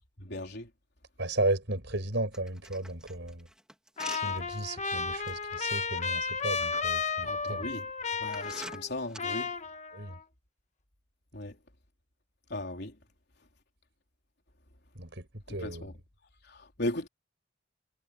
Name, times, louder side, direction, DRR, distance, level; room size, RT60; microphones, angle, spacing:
voice 1, 0.2-0.7 7.2-7.9 8.2-9.5 11.3-11.5 12.5-12.9 15.6-15.9 16.5-17.1, left 1 dB, 60° left, 3.8 m, -37 dB
voice 2, 1.2-3.5 4.1-7.7 9.9-10.2 15.0-15.9, right 2 dB, 70° right, 6.5 m, -34 dB
sound 1, 2.3-4.7 5.2-5.4 6.3-6.8 7.5-7.6 8.3-9.2, right 1 dB, 5° right, 3.2 m, -45 dB
Trumpet, 4.0-8.9 9.2-10.2, left 5 dB, 40° left, 1.3 m, -33 dB
head